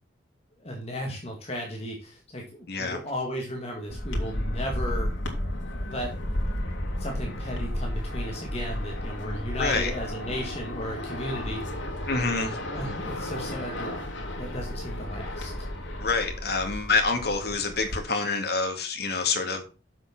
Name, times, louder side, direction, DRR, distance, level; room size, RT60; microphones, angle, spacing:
voice 1, 0.6-5.1 5.8-6.1 7.0-11.6 12.7-13.9 14.3-15.5, equal, 30° left, 0 dB, 1.9 m, -35 dB
voice 2, 2.7-3.0 9.6-9.9 12.1-12.6 16.0-19.6, left 3 dB, 55° left, 4 dB, 2.1 m, -27 dB
sound 1, 3.9-18.0, left 1 dB, 75° left, 2.6 m, -33 dB
7.4 x 6.5 x 6.0 m, 0.33 s
head